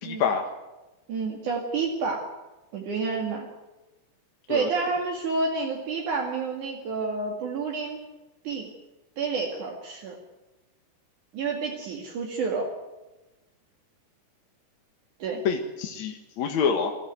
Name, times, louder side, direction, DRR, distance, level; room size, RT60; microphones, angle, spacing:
voice 1, 0.0-0.5 4.5-4.7 15.4-17.0, left 6 dB, 65° left, 2 dB, 2.6 m, -26 dB
voice 2, 1.1-2.3 2.7-3.5 4.5-8.0 8.4-8.7 9.2-10.2 11.3-12.7 15.2-15.4, right 4 dB, 70° right, -1 dB, 3.7 m, -29 dB
23.0 x 15.0 x 9.4 m, 1.1 s
omnidirectional pair, 3.7 m